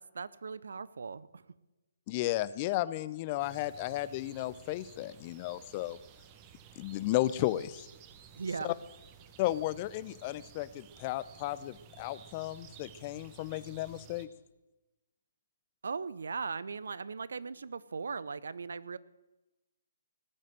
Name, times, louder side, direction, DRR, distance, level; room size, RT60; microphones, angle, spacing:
voice 1, 0.0-1.4 8.4-8.8 15.8-19.0, right 5 dB, 65° right, 18 dB, 0.7 m, -38 dB
voice 2, 2.1-6.0 6.8-7.9 8.6-8.7 9.4-14.3, left 15 dB, 30° left, 17 dB, 0.6 m, -34 dB
sound 1, 3.4-14.3, right 7 dB, 25° right, 1.3 m, -55 dB
18.5 x 7.7 x 7.7 m, 1.0 s
figure-of-eight pair, 135°, 0 cm